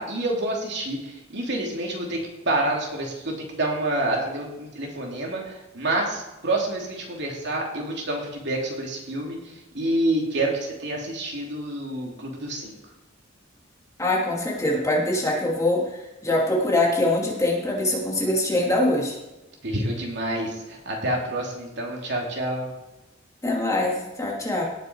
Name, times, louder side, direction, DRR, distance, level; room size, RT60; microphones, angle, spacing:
voice 1, 0.0-12.8 19.6-22.7, right 1 dB, 60° right, -1 dB, 2.9 m, -28 dB
voice 2, 14.0-19.1 23.4-24.6, left 1 dB, 15° left, -3 dB, 2.5 m, -23 dB
18.0 x 6.9 x 4.7 m, 1.0 s
head